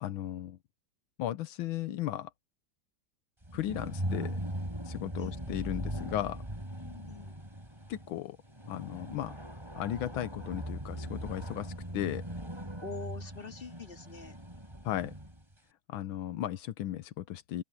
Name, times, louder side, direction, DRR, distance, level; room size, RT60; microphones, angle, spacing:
voice 1, 0.0-0.6 1.2-2.3 3.5-4.4 4.8-6.4 7.9-8.4 8.7-9.3 9.7-12.2 14.8-15.1 15.9-17.6, left 12 dB, 85° left, 1.6 m, -35 dB
sound 1, 3.4-15.4, right 1 dB, 15° right, 4.2 m, -40 dB
voice 2, 6.8-7.4 12.8-14.4, left 4 dB, 25° left, 2.7 m, -44 dB
open air
omnidirectional pair, 2.2 m